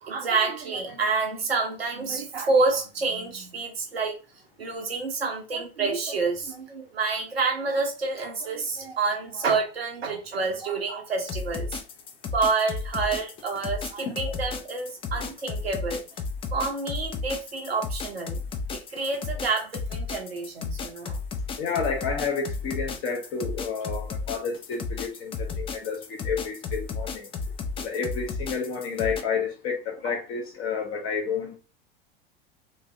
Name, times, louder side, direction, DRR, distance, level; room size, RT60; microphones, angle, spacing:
voice 1, 0.0-4.1 4.6-11.8 12.3-16.0 16.5-18.4 18.7-21.2 30.0-30.1, right 4 dB, 85° right, 0.8 m, -28 dB
sound 1, 11.2-29.2, left 4 dB, 20° left, 0.3 m, -33 dB
voice 2, 21.6-27.2 27.8-31.6, left 5 dB, 45° left, 0.9 m, -30 dB
3.1 x 2.6 x 2.5 m
figure-of-eight pair, 80°, 30 cm